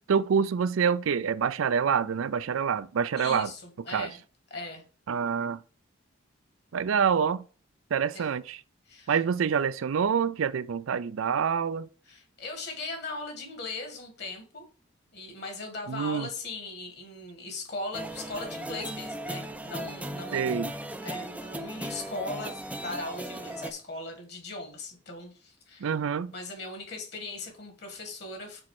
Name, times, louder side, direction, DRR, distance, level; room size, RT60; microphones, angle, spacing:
voice 1, 0.1-3.5 3.9-4.1 5.1-5.6 6.7-7.5 7.9-8.6 9.1-11.9 15.9-16.3 20.3-20.7 25.8-26.3, right 7 dB, 80° right, 0.4 m, -26 dB
voice 2, 3.1-4.2 4.5-4.8 8.1-8.3 8.9-9.2 12.1-14.7 15.1-20.6 21.0-25.9 26.3-28.6, left 2 dB, 50° left, 1.7 m, -39 dB
sound 1, 17.9-23.7, right 1 dB, 5° right, 0.4 m, -37 dB
6.2 x 4.2 x 4.8 m
head